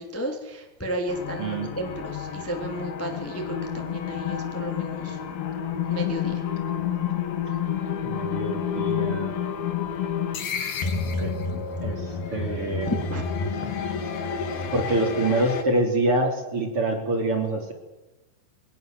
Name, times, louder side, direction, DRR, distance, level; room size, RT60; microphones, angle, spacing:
voice 1, 0.0-5.2 5.9-6.3 12.9-13.2 13.6-13.7 14.0-14.1 14.5-14.6, right 1 dB, 5° left, 2 dB, 2.1 m, -33 dB
sound 1, 1.1-15.6, left 7 dB, 60° left, 3.6 m, -29 dB
voice 2, 1.4-1.7 8.0-9.4 11.0-11.3 11.8-12.9 13.8-13.9 14.7-17.7, right 2 dB, 35° right, 2 dB, 3.6 m, -26 dB
23.5 x 19.5 x 7.8 m, 1.1 s
omnidirectional pair, 5.3 m